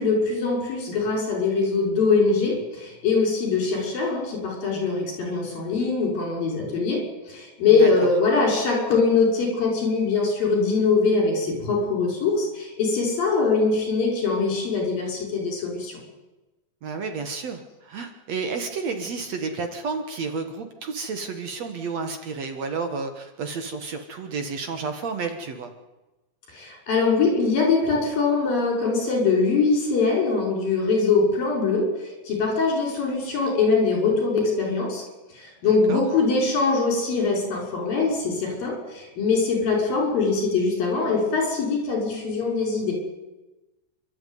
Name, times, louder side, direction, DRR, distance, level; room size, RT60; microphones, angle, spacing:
voice 1, 0.0-16.0 26.5-35.0 35.3-43.0, left 4 dB, 75° left, 1 dB, 7.6 m, -22 dB
voice 2, 16.8-25.7 35.6-36.0, right 4 dB, 55° right, 6 dB, 2.3 m, -31 dB
28.5 x 13.0 x 9.3 m, 1.1 s
omnidirectional pair, 4.1 m